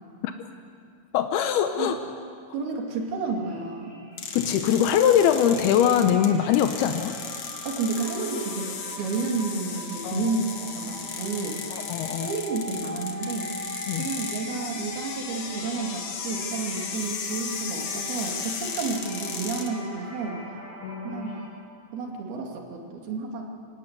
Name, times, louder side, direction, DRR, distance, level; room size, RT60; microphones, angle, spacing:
voice 1, 1.1-2.0 4.3-7.2 10.0-10.3 11.7-12.3 13.9-14.1 20.8-21.4, left 9 dB, 80° left, 7 dB, 2.8 m, -22 dB
voice 2, 2.5-4.0 7.6-11.6 12.2-13.6 14.0-20.4 21.0-21.3 21.9-23.5, right 4 dB, 75° right, 1 dB, 4.3 m, -31 dB
sound 1, 2.8-3.1 3.4-21.5, equal, 35° right, 5.8 m, -42 dB
sound 2, 4.2-19.7, left 6 dB, 55° left, 2.2 m, -36 dB
25.5 x 18.0 x 8.1 m, 2.4 s
omnidirectional pair, 4.5 m